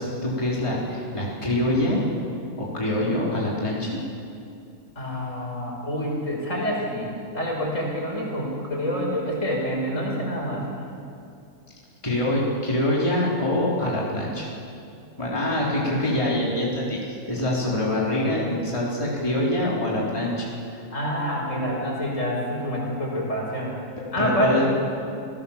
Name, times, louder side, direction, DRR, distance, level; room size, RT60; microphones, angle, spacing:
voice 1, 0.0-2.0 2.6-4.0 12.0-14.5 15.2-20.8 24.2-24.7, left 1 dB, 20° left, -5 dB, 3.8 m, -25 dB
voice 2, 5.0-7.1 7.3-10.6 20.9-23.7 24.1-24.7, equal, 55° left, -2 dB, 5.8 m, -27 dB
27.5 x 18.0 x 7.2 m, 2.6 s
omnidirectional pair, 1.5 m